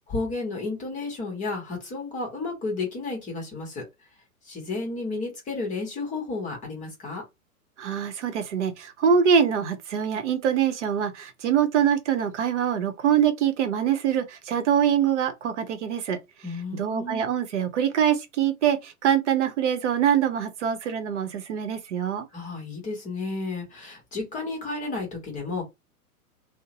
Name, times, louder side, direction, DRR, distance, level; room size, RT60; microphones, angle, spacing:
voice 1, 0.1-3.9 4.4-7.2 16.4-17.3 22.3-25.7, left 3 dB, 15° left, 0.9 m, -32 dB
voice 2, 7.8-16.2 16.7-22.3, right 8 dB, 50° right, 0.8 m, -24 dB
2.6 x 2.0 x 2.9 m
figure-of-eight pair, 105°, 45 cm